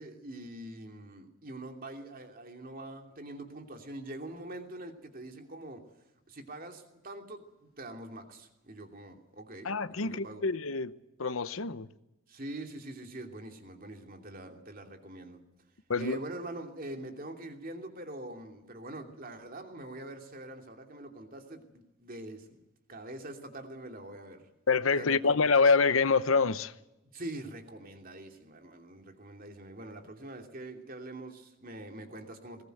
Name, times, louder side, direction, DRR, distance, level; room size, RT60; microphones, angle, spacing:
voice 1, 0.0-5.8 6.3-10.4 12.3-15.4 16.0-24.5 25.0-25.3 27.1-32.6, right 1 dB, 45° right, 2.8 m, -44 dB
voice 2, 9.6-11.9 15.9-16.2 24.7-26.7, left 4 dB, 75° left, 0.9 m, -26 dB
21.0 x 19.0 x 8.0 m
head